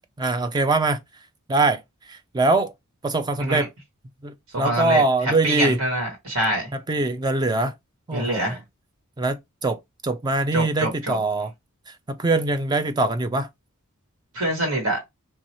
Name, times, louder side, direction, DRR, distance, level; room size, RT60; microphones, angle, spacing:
voice 1, 0.2-1.0 1.5-1.8 2.1-2.7 3.0-3.7 4.2-5.8 6.7-7.7 8.1-8.6 9.2-9.8 10.0-11.5 12.1-13.5, right 3 dB, 20° right, 0.4 m, -23 dB
voice 2, 4.5-6.7 8.1-8.6 10.5-11.2 14.3-15.0, right 1 dB, 75° right, 1.7 m, -25 dB
2.9 x 2.6 x 2.9 m
head